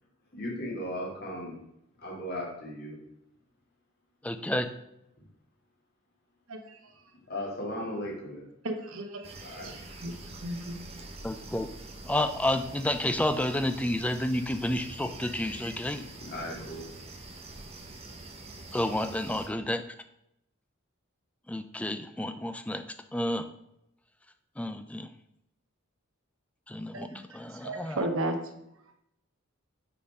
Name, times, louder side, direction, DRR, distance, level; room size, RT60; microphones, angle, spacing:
voice 1, 0.3-1.6 2.0-3.0 7.3-8.5 9.4-9.8 16.2-16.9, left 1 dB, 50° left, -2 dB, 1.9 m, -36 dB
voice 2, 4.2-4.7 11.2-11.7 12.0-16.0 18.7-19.8 21.5-22.8 23.1-23.5 24.6-25.1 26.7-28.0, left 1 dB, 5° left, 9 dB, 0.3 m, -30 dB
voice 3, 6.5-6.8 8.6-9.8 10.0-10.8 26.9-27.2 27.6-28.5, right 1 dB, 75° right, 5 dB, 0.9 m, -34 dB
sound 1, 9.2-19.5, right 2 dB, 30° right, 0.8 m, -45 dB
5.9 x 4.0 x 4.8 m, 0.81 s
head